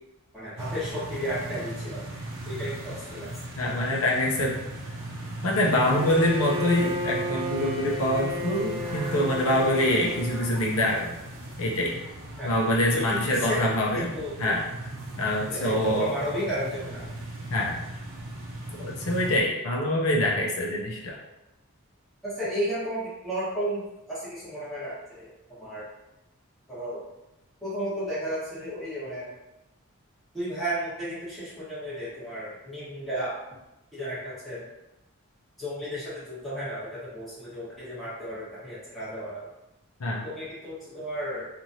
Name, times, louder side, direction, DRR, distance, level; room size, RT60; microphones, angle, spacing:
voice 1, 0.3-2.0 2.4-3.4 12.4-12.5 12.9-14.6 15.5-17.1 22.2-25.3 25.6-25.9 26.7-27.0 27.6-29.3 30.3-33.4 33.9-34.7 35.6-39.5 40.2-41.5, equal, ahead, -11 dB, 1.3 m, -33 dB
sound 1, 0.6-19.4, right 1 dB, 60° right, 0.6 m, -38 dB
voice 2, 3.6-4.5 5.4-11.1 11.6-12.0 12.4-14.1 14.4-14.6 15.2-16.1 17.5-17.8 18.8-21.2 40.0-40.2, left 1 dB, 70° left, -2 dB, 0.5 m, -25 dB
Bowed string instrument, 5.8-10.6, equal, 20° right, 0.4 m, -33 dB
3.0 x 2.5 x 2.6 m, 0.96 s
head